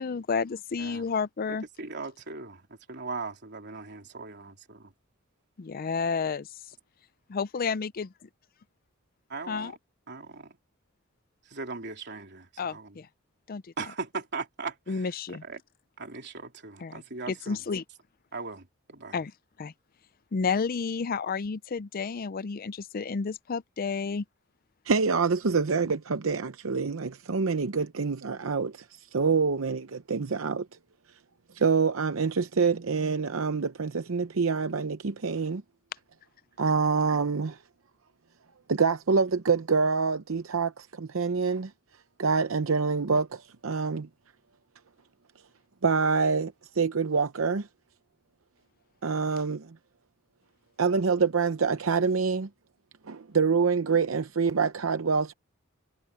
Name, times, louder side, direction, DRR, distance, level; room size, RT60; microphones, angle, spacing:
voice 1, 0.0-1.6 5.6-6.6 7.3-8.1 9.5-9.7 12.6-13.1 13.5-13.7 14.9-15.4 16.8-17.8 19.1-19.3 19.6-19.7 20.3-24.2, left 5 dB, 45° left, 0.5 m, -31 dB
voice 2, 1.5-4.9 9.3-9.7 10.1-10.5 11.5-13.0 13.8-15.1 15.5-15.6 16.0-17.6 18.3-19.2, right 4 dB, 55° right, 3.5 m, -39 dB
voice 3, 24.9-28.8 29.1-30.7 31.5-35.6 36.6-37.6 38.7-41.7 42.2-44.1 45.8-47.7 49.0-49.8 50.8-52.5 53.1-55.3, right 5 dB, 70° right, 0.7 m, -26 dB
head